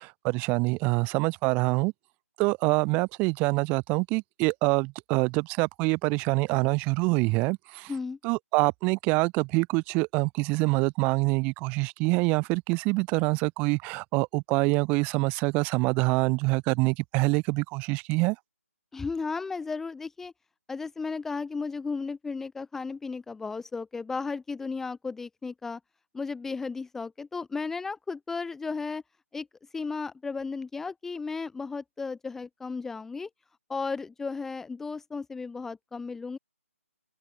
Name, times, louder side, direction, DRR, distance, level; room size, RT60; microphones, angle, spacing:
voice 1, 0.0-1.9 2.4-7.9 8.2-18.4, right 27 dB, 20° right, 2.7 m, -25 dB
voice 2, 18.9-20.3 20.7-25.8 26.1-29.0 29.3-29.5 29.7-33.3 33.7-36.4, left 4 dB, 5° left, 1.6 m, -34 dB
open air
figure-of-eight pair, 150°, 8 cm